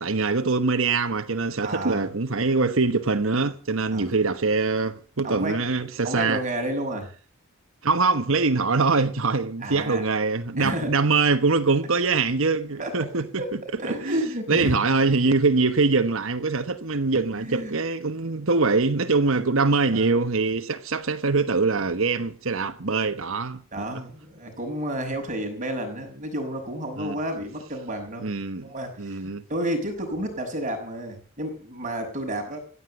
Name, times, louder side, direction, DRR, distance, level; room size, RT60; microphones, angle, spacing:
voice 1, 0.0-6.4 7.8-14.2 14.5-23.6 23.9-24.0 27.0-27.2 28.2-28.7 29.0-29.4, right 3 dB, 65° right, 1.2 m, -23 dB
voice 2, 1.6-2.1 3.9-4.0 5.2-5.6 6.0-7.1 9.6-10.0 10.6-10.9 12.8-13.1 13.4-13.5 13.8-14.8 17.3-17.7 19.8-20.2 23.7-28.3 28.6-32.6, right 1 dB, 35° right, 5.9 m, -31 dB
16.0 x 9.7 x 8.2 m
head